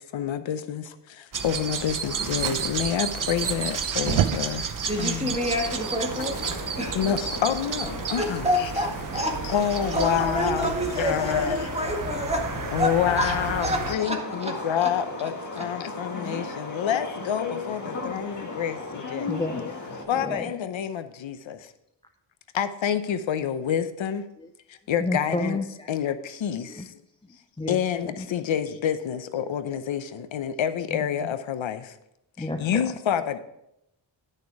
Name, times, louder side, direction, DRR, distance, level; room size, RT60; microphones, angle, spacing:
voice 1, 0.1-4.7 5.0-5.4 6.9-8.4 9.5-10.7 11.0-11.6 12.7-19.3 20.1-21.7 22.5-24.3 24.7-25.6 25.9-26.9 27.7-32.0 32.4-33.4, left 9 dB, 85° left, 11 dB, 0.8 m, -28 dB
sound 1, 1.3-13.9, right 6 dB, 45° right, 0.9 m, -32 dB
Fire, 2.4-11.4, right 10 dB, 75° right, 0.7 m, -35 dB
voice 2, 4.9-6.4 6.8-7.2 8.2-14.5 14.8-14.9 15.6-15.7, equal, 15° right, 1 dB, 1.7 m, -28 dB
sound 2, 5.3-20.0, left 3 dB, 40° left, 1.7 m, -36 dB
voice 3, 19.3-20.5 24.4-24.5 25.0-26.0 26.6-26.9 27.2-27.8 28.2-28.5 29.1-29.5 30.9-31.1 32.4-32.9, left 2 dB, 10° left, 5 dB, 0.5 m, -33 dB
10.5 x 6.7 x 4.7 m, 0.80 s
wide cardioid pair, 140°, 45 cm